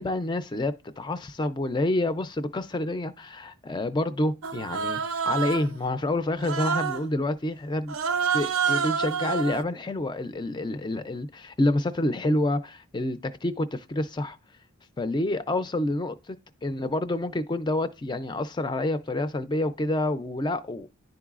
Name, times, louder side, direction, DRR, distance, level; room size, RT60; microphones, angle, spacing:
voice 1, 0.0-8.0 8.3-14.4 15.0-16.4 16.6-20.9, left 1 dB, 20° left, 0.3 m, -28 dB
Human voice, 4.4-5.8 6.4-7.1 7.9-9.6, right 6 dB, 70° right, 0.4 m, -28 dB
10.5 x 3.8 x 2.4 m
head